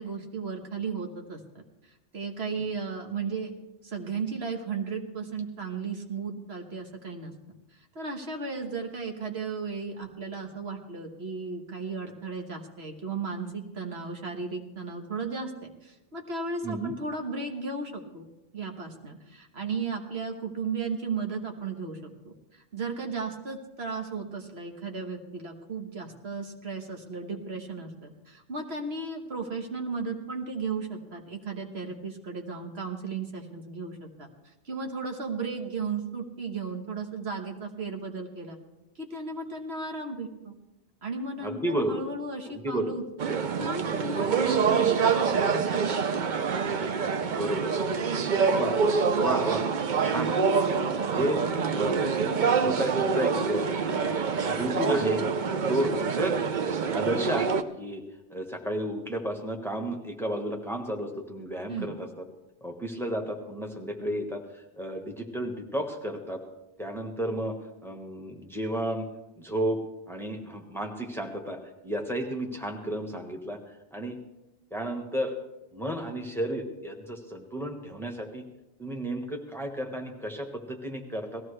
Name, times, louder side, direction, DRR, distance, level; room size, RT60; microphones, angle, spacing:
voice 1, 0.0-1.6 2.1-3.5 3.8-7.3 7.9-18.2 18.5-34.3 34.6-38.6 38.9-40.5 41.0-45.1 45.4-46.1 61.7-61.9, right 4 dB, 65° right, 3 dB, 1.6 m, -35 dB
voice 2, 41.4-42.0 42.5-42.9 47.2-47.7 48.3-48.9 49.2-49.6 50.0-50.3 50.9-53.7 53.9-54.2 54.4-55.2 55.7-56.4 56.9-58.0 58.3-62.2 62.6-66.4 66.8-67.5 67.8-69.1 69.4-69.8 70.1-73.6 73.9-74.2 74.7-75.3 75.7-78.4 78.8-81.4, right 1 dB, ahead, 2 dB, 1.3 m, -32 dB
sound 1, 43.2-57.6, right 5 dB, 50° right, 0.7 m, -26 dB
18.5 x 15.0 x 3.3 m, 0.98 s
omnidirectional pair, 1.1 m